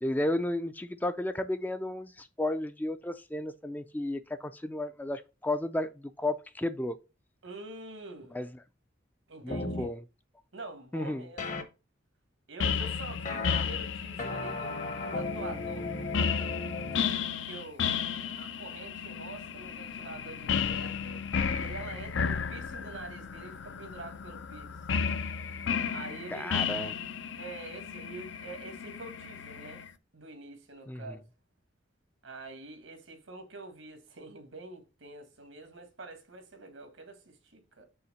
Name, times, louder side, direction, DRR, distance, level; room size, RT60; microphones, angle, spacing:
voice 1, 0.0-7.0 8.3-8.5 9.4-10.0 10.9-11.3 26.3-26.9 30.9-31.2, left 1 dB, 10° left, 0.3 m, -33 dB
voice 2, 7.4-8.3 9.3-9.9 10.5-11.4 12.5-15.9 16.3-16.6 17.4-17.9 18.4-21.2 21.5-24.8 25.9-26.5 27.4-29.8 30.1-31.2 32.2-37.9, right 3 dB, 85° right, 1.5 m, -46 dB
sound 1, 9.5-9.9 11.4-11.6 13.3-13.6 14.2-17.0, left 3 dB, 40° left, 0.8 m, -35 dB
sound 2, 12.6-29.9, left 6 dB, 75° left, 0.5 m, -34 dB
5.7 x 3.5 x 5.4 m
head